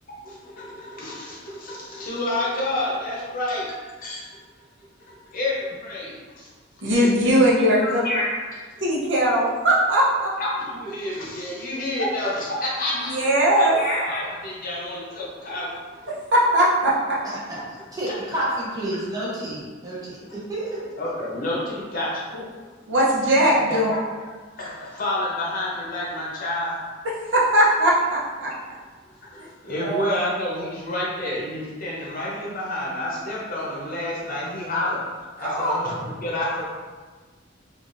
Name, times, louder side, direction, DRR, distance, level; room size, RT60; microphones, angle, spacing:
voice 1, 0.2-4.4 5.1-6.5 7.8-8.8 10.4-13.2 13.6-16.1 20.2-20.3 21.0-22.3 23.5-24.0 24.6-26.8 28.5-28.6 29.3-35.0 35.4-36.6, left 1 dB, 45° left, -5 dB, 0.8 m, -29 dB
voice 2, 6.8-8.0 8.8-10.3 13.0-13.8 16.3-17.2 22.9-23.9 27.3-28.8 29.4-29.5 29.8-30.2 35.4-35.8, right 1 dB, 70° right, -5 dB, 0.8 m, -20 dB
voice 3, 17.2-20.9, right 1 dB, 20° right, -7 dB, 0.7 m, -30 dB
3.4 x 2.4 x 2.5 m, 1.4 s
head